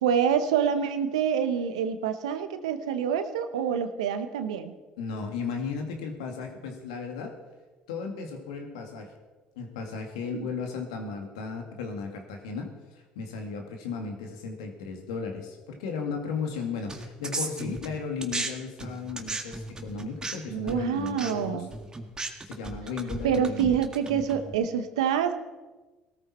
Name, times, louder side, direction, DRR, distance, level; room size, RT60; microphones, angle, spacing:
voice 1, 0.0-4.7 10.3-10.5 20.5-21.7 23.2-25.3, right 8 dB, 90° right, 9 dB, 1.0 m, -26 dB
voice 2, 5.0-7.4 7.9-9.1 9.6-21.7 22.4-23.8, left 5 dB, 85° left, 4 dB, 2.2 m, -35 dB
sound 1, 16.9-18.5 18.8-24.5, right 2 dB, 20° right, 1.9 m, -36 dB
18.0 x 13.5 x 4.4 m, 1.2 s
hypercardioid pair, 65°, 3 cm